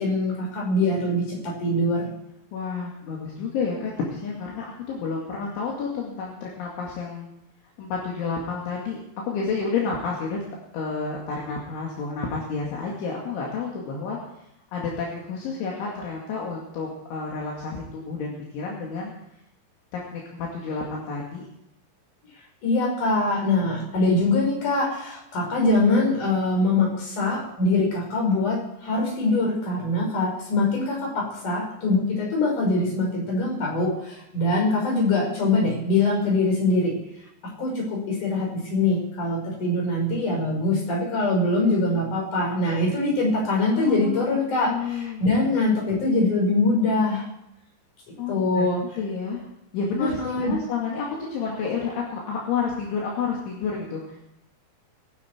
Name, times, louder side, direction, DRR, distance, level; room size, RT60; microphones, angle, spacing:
voice 1, 0.0-2.1 22.6-36.9 37.6-47.3 48.3-48.8 50.0-50.5, left 2 dB, 40° left, -1 dB, 6.5 m, -23 dB
voice 2, 2.5-7.3 7.8-9.0 9.3-10.4 10.7-14.2 14.7-19.1 19.9-21.5 35.0-35.1 43.7-44.2 44.6-45.2 48.2-48.7 49.0-49.5 49.7-54.2, left 5 dB, 70° left, -3 dB, 4.7 m, -30 dB
23.5 x 10.5 x 4.6 m, 0.82 s
omnidirectional pair, 5.9 m